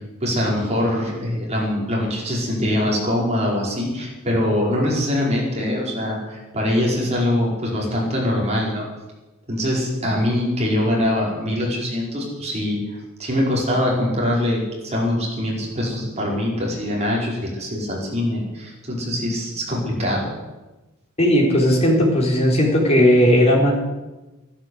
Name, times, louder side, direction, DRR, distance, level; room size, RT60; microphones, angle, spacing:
voice 1, 0.2-8.8 9.5-12.8 13.2-20.3, left 1 dB, 30° right, -3 dB, 5.1 m, -23 dB
voice 2, 21.2-23.7, equal, 30° left, -2 dB, 4.3 m, -16 dB
14.0 x 12.0 x 8.0 m, 1.1 s
head